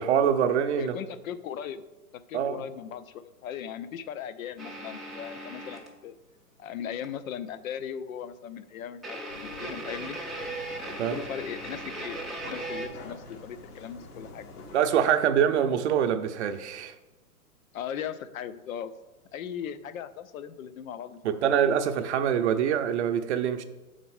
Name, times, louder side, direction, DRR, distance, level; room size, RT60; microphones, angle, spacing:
voice 1, 0.0-0.9 2.3-2.6 11.0-11.2 14.7-16.9 21.2-23.6, right 8 dB, 50° right, 0.6 m, -25 dB
voice 2, 0.8-1.8 2.3-6.1 6.6-10.2 11.1-12.2 12.5-14.5 17.7-18.9 19.3-21.7, left 8 dB, 65° left, 0.6 m, -38 dB
sound 1, 4.6-5.9 7.0-7.1 7.5-7.6 9.0-12.9, right 2 dB, ahead, 0.4 m, -38 dB
sound 2, 9.3-14.8, left 3 dB, 80° left, 1.3 m, -46 dB
6.9 x 4.1 x 4.7 m
hypercardioid pair, 130°, 45 cm